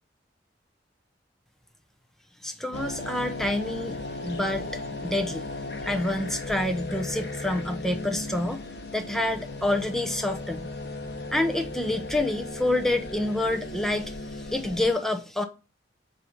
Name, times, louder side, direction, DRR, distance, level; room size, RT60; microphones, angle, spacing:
voice 1, 2.4-5.5 5.8-8.6 8.9-10.7 11.3-15.5, left 1 dB, ahead, 0.7 m, -28 dB
sound 1, 2.7-14.9, left 2 dB, 65° left, 1.0 m, -36 dB
7.4 x 2.8 x 5.0 m
head